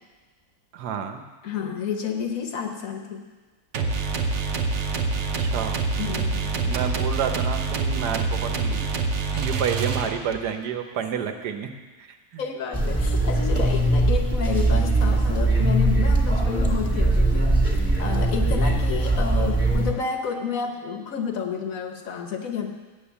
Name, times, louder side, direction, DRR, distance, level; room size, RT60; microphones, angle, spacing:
voice 1, 0.7-1.2 5.4-5.8 6.6-8.8 9.4-11.7 12.3-12.4 12.9-13.0, right 7 dB, 80° right, 6 dB, 1.3 m, -29 dB
voice 2, 1.4-3.2 6.0-6.5 8.5-9.4 12.4-17.6 18.0-22.7, left 6 dB, 60° left, 4 dB, 1.2 m, -30 dB
sound 1, 3.7-10.5, right 4 dB, 55° right, 0.8 m, -26 dB
sound 2, 12.7-19.9, right 2 dB, 10° right, 1.6 m, -21 dB
8.6 x 7.7 x 7.0 m, 1.3 s
omnidirectional pair, 1.7 m